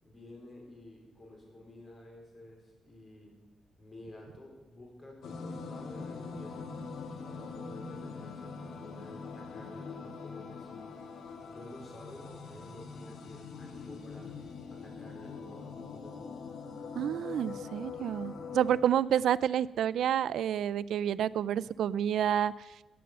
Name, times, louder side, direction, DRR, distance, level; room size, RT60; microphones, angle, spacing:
voice 1, 0.0-3.4 3.8-6.7 7.2-11.0 11.5-14.3 14.7-16.2, left 1 dB, 30° left, 0 dB, 4.3 m, -51 dB
sound 1, 5.2-18.8, left 4 dB, 85° left, 1.8 m, -43 dB
voice 2, 17.0-22.5, right 10 dB, 75° right, 19 dB, 0.3 m, -29 dB
15.5 x 9.0 x 6.8 m, 1.1 s
cardioid pair, 130°, 0 cm